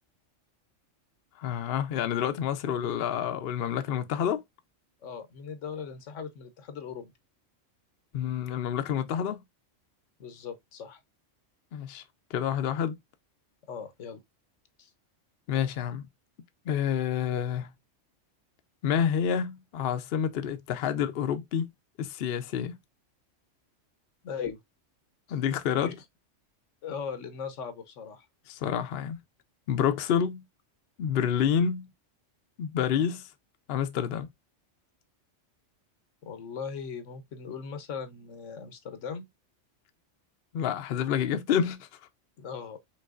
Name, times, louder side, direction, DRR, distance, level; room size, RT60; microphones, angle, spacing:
voice 1, 1.4-4.4 8.1-9.4 11.7-12.0 12.3-13.0 15.5-16.1 16.7-17.7 18.8-21.7 22.0-22.8 25.3-26.0 28.5-29.2 29.7-30.4 31.0-31.9 32.6-33.3 33.7-34.3 40.5-42.0, left 8 dB, 60° left, 0.7 m, -28 dB
voice 2, 5.0-7.1 10.2-11.0 13.7-14.2 14.8-14.9 24.2-24.6 25.8-25.9 26.8-28.3 36.2-39.2 42.4-42.8, left 6 dB, 80° left, 1.1 m, -39 dB
5.3 x 3.3 x 2.4 m
omnidirectional pair, 1.3 m